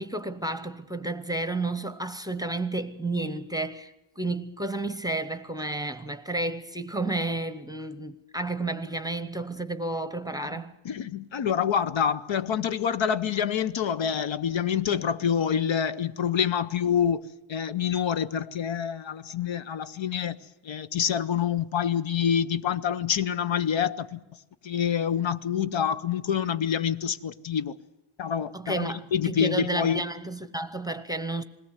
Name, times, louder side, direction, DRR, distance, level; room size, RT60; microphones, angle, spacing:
voice 1, 0.0-10.7 28.5-31.4, right 2 dB, 10° right, 0.8 m, -31 dB
voice 2, 10.8-20.4 20.6-24.2 24.6-27.7 28.2-30.1, left 8 dB, 65° left, 0.8 m, -27 dB
21.0 x 18.0 x 8.1 m
wide cardioid pair, 170°, 49 cm